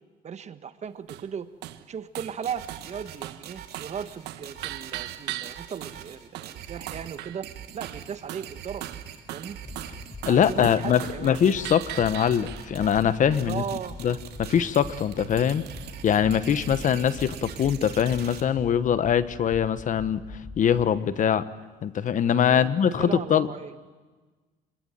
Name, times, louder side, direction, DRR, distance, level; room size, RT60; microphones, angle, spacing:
voice 1, 0.2-1.5 1.9-7.5 7.7-8.8 9.3-9.6 10.3-11.4 13.4-14.0 22.5-23.7, right 7 dB, 40° right, 11 dB, 1.5 m, -37 dB
sound 1, 1.1-1.3 1.6-1.8 2.1-2.4 2.7-2.9 3.2-3.5 3.7-4.0 4.3-6.1 6.3-6.6 6.9-7.5 7.8-8.5 8.8-13.0 14.5-17.5, right 15 dB, 85° right, 1.3 m, -40 dB
sound 2, 2.4-18.4, right 10 dB, 70° right, 2.8 m, -43 dB
sound 3, 9.6-20.9, left 2 dB, 20° left, 4.2 m, -43 dB
voice 2, 10.2-13.6 14.0-15.6 16.0-21.4 21.8-23.5, left 8 dB, 50° left, 14 dB, 1.3 m, -23 dB
27.5 x 21.5 x 9.2 m, 1.3 s
cardioid pair, 110°, 17 cm